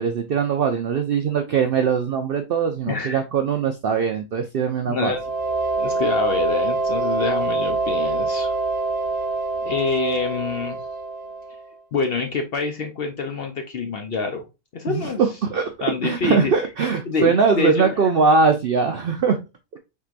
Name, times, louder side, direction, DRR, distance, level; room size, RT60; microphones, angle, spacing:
voice 1, 0.0-5.2 14.9-19.4, right 5 dB, 70° right, 6 dB, 0.5 m, -21 dB
voice 2, 2.9-3.2 4.9-5.2 5.8-8.5 9.6-10.8 11.9-14.5 14.7-15.2 15.8-16.5 17.1-17.9, left 4 dB, 60° left, 4 dB, 0.7 m, -26 dB
sound 1, 5.1-11.7, right 3 dB, 75° left, 2.2 m, -25 dB
4.5 x 3.7 x 2.4 m, 0.26 s
omnidirectional pair, 1.5 m